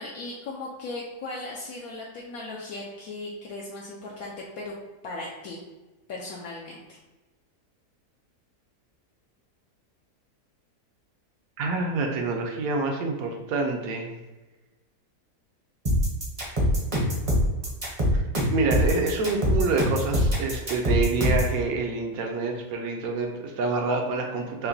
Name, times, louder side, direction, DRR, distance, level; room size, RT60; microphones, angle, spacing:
voice 1, 0.0-4.7 5.0-5.6 6.1-7.0, left 2 dB, 70° left, -4 dB, 1.0 m, -37 dB
voice 2, 11.6-14.1 18.1-18.2 18.5-24.7, right 3 dB, 70° right, 2 dB, 1.0 m, -27 dB
sound 1, 15.9-21.5, equal, 30° right, 0.6 m, -23 dB
5.7 x 2.2 x 2.7 m, 1.1 s
omnidirectional pair, 1.7 m